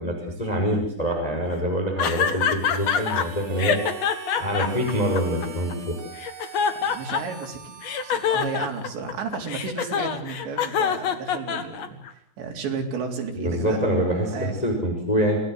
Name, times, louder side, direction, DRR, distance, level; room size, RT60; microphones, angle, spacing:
voice 1, 0.0-3.8 4.4-5.9 13.4-15.4, equal, 10° left, 1 dB, 5.3 m, -25 dB
sound 1, 2.0-3.2 3.6-5.7 6.2-7.5 7.8-12.1, left 7 dB, 50° left, 2.4 m, -25 dB
Harmonica, 2.6-9.5, right 5 dB, 55° right, 6.5 m, -42 dB
voice 2, 6.7-7.8 8.0-13.8 14.3-14.6, right 5 dB, 80° right, 2 dB, 5.8 m, -33 dB
28.0 x 19.0 x 8.0 m, 0.64 s
omnidirectional pair, 5.0 m